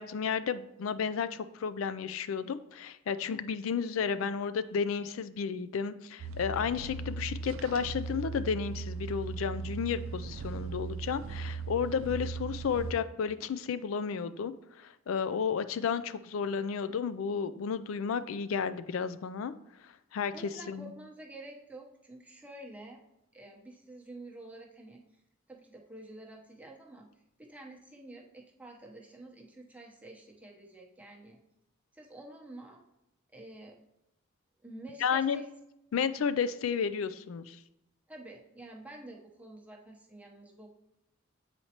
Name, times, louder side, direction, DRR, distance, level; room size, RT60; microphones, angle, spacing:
voice 1, 0.0-19.5 19.8-20.3 20.7-20.9 35.0-35.4 35.9-37.6, left 6 dB, 80° left, 13 dB, 0.4 m, -32 dB
sound 1, 6.2-12.9, right 4 dB, 75° right, 0.5 m, -38 dB
voice 2, 20.3-23.0 23.3-25.0 25.5-27.1 27.4-31.4 31.9-32.8 33.3-33.7 34.6-35.4 38.1-40.7, right 1 dB, 5° right, -1 dB, 0.8 m, -49 dB
7.9 x 4.2 x 2.9 m, 0.88 s
head